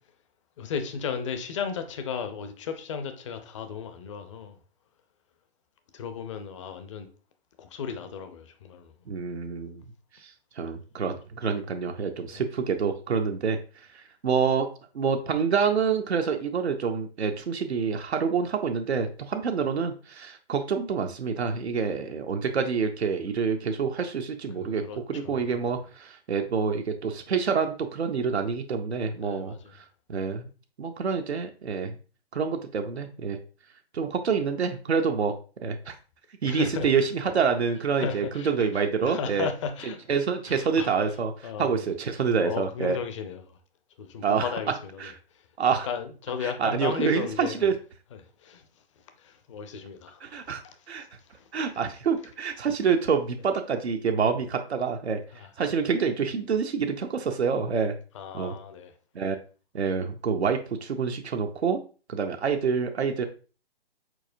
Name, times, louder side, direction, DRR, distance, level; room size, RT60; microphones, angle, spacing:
voice 1, 0.6-4.6 5.9-7.1 7.6-8.9 12.3-12.4 24.6-25.5 29.2-29.7 36.4-36.9 38.0-40.1 40.5-40.9 41.4-41.9 42.4-43.6 44.0-45.1 45.8-47.7 48.1-48.7 49.2-50.2 50.6-50.8 51.3-51.5 52.6-52.7 55.3-55.5 58.1-58.9, left 6 dB, 30° left, 0.5 m, -35 dB
voice 2, 9.1-9.8 10.2-10.3 10.6-13.6 13.9-14.7 14.9-24.8 25.1-29.5 30.1-30.5 30.8-32.0 32.3-33.4 33.9-35.3 35.6-35.9 36.4-39.5 40.1-43.0 44.2-44.5 45.0-45.1 45.6-45.9 46.4-47.7 50.2-50.6 50.9-51.1 51.5-55.2 55.6-57.9 58.3-58.5 59.1-59.4 59.7-61.8 62.1-63.3, right 6 dB, 85° right, 0.6 m, -27 dB
4.7 x 4.2 x 2.5 m
figure-of-eight pair, 135°, 32 cm